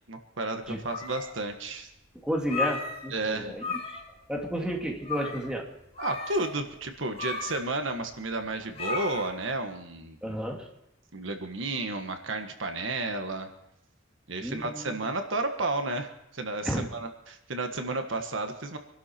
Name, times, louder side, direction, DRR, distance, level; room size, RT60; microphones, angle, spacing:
voice 1, 0.1-1.9 3.1-3.6 6.0-10.4 11.1-13.5 14.3-18.8, right 2 dB, 70° right, 6 dB, 1.5 m, -32 dB
sound 1, 0.6-1.5 1.9-2.0 2.3-3.3 3.5-4.2 4.5-4.6 5.0-5.5 5.9-9.5, left 4 dB, 30° left, 3.9 m, -35 dB
voice 2, 2.2-4.0 4.3-5.7 10.2-10.7 14.4-15.1 16.6-16.9, equal, 5° right, 1 dB, 2.1 m, -32 dB
25.0 x 12.0 x 4.5 m, 0.82 s
head